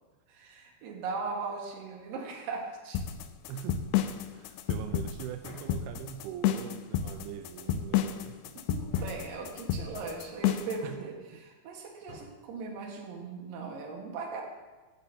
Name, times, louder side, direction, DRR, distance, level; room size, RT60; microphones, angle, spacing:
voice 1, 0.3-3.0 8.5-14.4, right 4 dB, 65° right, 0 dB, 3.1 m, -39 dB
sound 1, 2.9-10.8, left 10 dB, 90° left, 2.6 m, -30 dB
voice 2, 3.5-3.9 4.3-8.6 10.8-11.4, right 10 dB, 90° right, 7 dB, 2.6 m, -42 dB
sound 2, 4.1-4.5 5.4-5.8 7.3-7.7 8.9-9.3 10.7-11.1 12.1-12.4, left 1 dB, 50° left, 4.8 m, -52 dB
14.5 x 11.0 x 2.8 m, 1.3 s
omnidirectional pair, 4.5 m